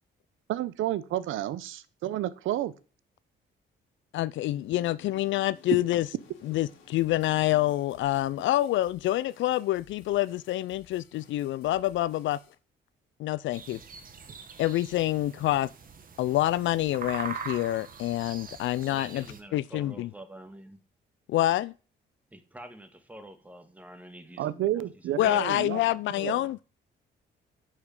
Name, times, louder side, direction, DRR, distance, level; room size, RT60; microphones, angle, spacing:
voice 1, 0.5-2.7 24.4-25.8 26.2-26.4, right 13 dB, 80° right, 0.7 m, -30 dB
voice 2, 4.1-6.1 6.4-12.4 13.2-13.8 14.6-15.7 16.2-19.2 19.5-20.1 21.3-21.7 25.2-26.6, left 15 dB, 75° left, 0.4 m, -27 dB
Insect, 4.5-9.5, left 5 dB, 55° left, 2.1 m, -58 dB
sound 1, 5.2-12.5, left 6 dB, 90° left, 3.3 m, -59 dB
sound 2, 13.5-19.4, right 5 dB, 45° right, 1.5 m, -42 dB
voice 3, 18.7-20.8 22.3-25.7 26.1-26.5, right 1 dB, 5° right, 1.5 m, -47 dB
9.8 x 5.1 x 5.4 m
cardioid pair, 90°, 20 cm